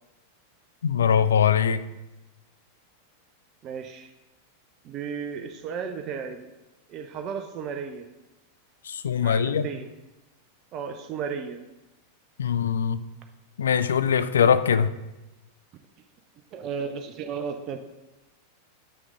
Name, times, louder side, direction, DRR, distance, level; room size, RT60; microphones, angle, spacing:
voice 1, 0.8-1.8 8.8-9.7 12.4-13.0 13.6-14.9, left 7 dB, 65° left, 13 dB, 0.4 m, -22 dB
voice 2, 3.6-4.1 4.8-6.5 6.9-8.1 9.2-9.9 10.7-11.6 16.5-17.8, right 6 dB, 35° right, 6 dB, 0.6 m, -34 dB
7.8 x 6.0 x 3.7 m, 1.0 s
figure-of-eight pair, 90°, 0 cm